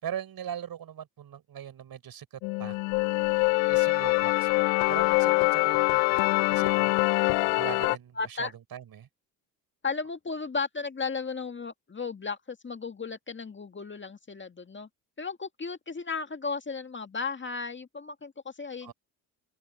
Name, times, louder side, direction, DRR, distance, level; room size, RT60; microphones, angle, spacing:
voice 1, 0.0-2.8 3.7-6.9 7.5-9.1 18.8-18.9, right 9 dB, 50° right, 5.8 m, -40 dB
sound 1, 2.4-8.0, left 31 dB, 70° left, 0.5 m, -24 dB
voice 2, 8.2-8.5 9.8-14.9 15.2-18.9, left 4 dB, 25° left, 2.0 m, -35 dB
open air
hypercardioid pair, 65°, 45 cm